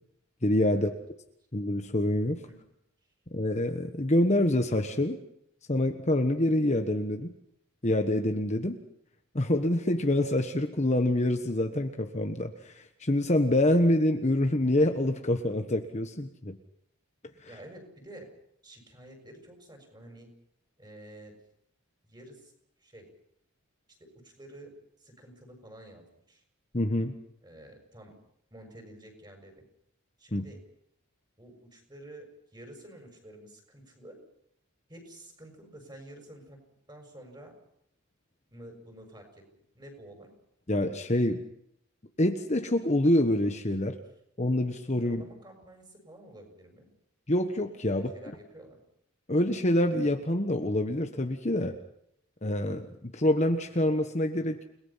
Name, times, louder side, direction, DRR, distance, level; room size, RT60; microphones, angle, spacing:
voice 1, 0.4-0.9 1.5-2.4 3.3-5.2 5.7-7.3 7.8-8.8 9.3-16.5 26.7-27.1 30.3-30.4 40.7-41.4 42.2-44.0 44.4-45.2 47.3-48.3 49.3-51.8 52.4-54.6, left 1 dB, 30° left, 5 dB, 1.3 m, -26 dB
voice 2, 17.5-18.3 18.6-20.3 20.8-21.3 22.0-22.5 22.8-23.1 24.0-24.7 25.0-26.4 27.4-28.1 28.5-29.6 30.2-30.6 31.4-34.2 34.9-36.6 36.9-37.6 38.5-39.4 39.7-40.3 45.0-46.9 47.9-48.8, right 1 dB, 20° right, 4 dB, 6.3 m, -50 dB
30.0 x 19.5 x 5.8 m, 0.74 s
head